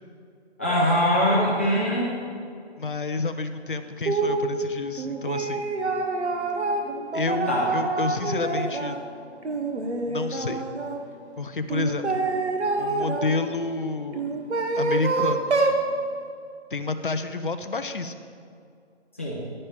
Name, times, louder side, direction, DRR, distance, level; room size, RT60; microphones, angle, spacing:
voice 1, 0.6-2.1 7.5-7.7 19.2-19.4, equal, 10° left, -7 dB, 0.8 m, -22 dB
voice 2, 2.8-5.7 7.1-9.0 10.0-10.6 11.4-12.2 12.8-14.4 14.7-15.6 16.7-18.1, left 3 dB, 50° left, 10 dB, 0.6 m, -29 dB
sound 1, 4.1-4.5 5.0-9.0 9.4-11.0 11.7-13.3 14.1-15.8, right 3 dB, 75° right, 1.3 m, -26 dB
11.0 x 9.7 x 3.4 m, 2.3 s
figure-of-eight pair, 170°, 34 cm